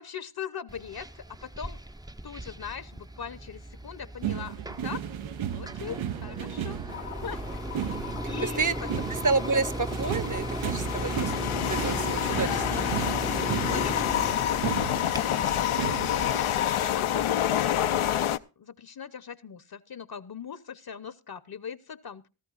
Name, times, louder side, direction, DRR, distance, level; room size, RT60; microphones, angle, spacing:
voice 1, 0.0-1.8 2.2-5.1 5.5-6.8 7.2-7.6 8.2-8.6 13.7-15.5 16.1-22.2, left 7 dB, 50° left, 16 dB, 0.8 m, -40 dB
sound 1, 0.7-17.7, right 1 dB, 10° right, 0.5 m, -37 dB
sound 2, 4.2-16.4, right 10 dB, 70° right, 0.6 m, -35 dB
sound 3, 6.9-18.4, left 11 dB, 85° left, 0.6 m, -29 dB
voice 2, 8.4-8.7 9.1-12.8, right 4 dB, 40° right, 15 dB, 0.9 m, -30 dB
18.0 x 13.5 x 2.4 m, 0.31 s
cardioid pair, 60°, 48 cm